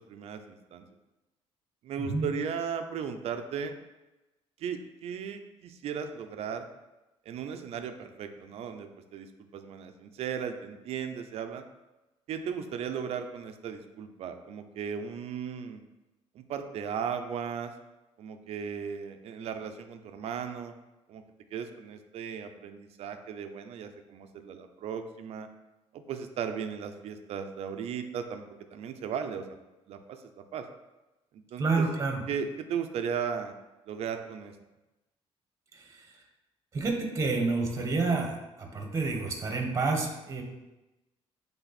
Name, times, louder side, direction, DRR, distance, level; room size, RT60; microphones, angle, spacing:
voice 1, 0.1-0.9 1.8-3.8 4.6-6.7 7.3-11.6 12.3-15.8 16.3-17.7 18.2-20.7 21.1-21.2 21.5-25.5 25.9-28.4 28.7-29.4 29.9-30.6 31.3-31.9 32.3-33.5 33.9-34.5, right 7 dB, 65° right, 7 dB, 0.6 m, -36 dB
voice 2, 31.6-32.2 35.7-36.1 36.7-40.4, right 3 dB, 25° right, 2 dB, 1.2 m, -29 dB
8.0 x 3.6 x 4.2 m, 1.0 s
cardioid pair, 140°, 11 cm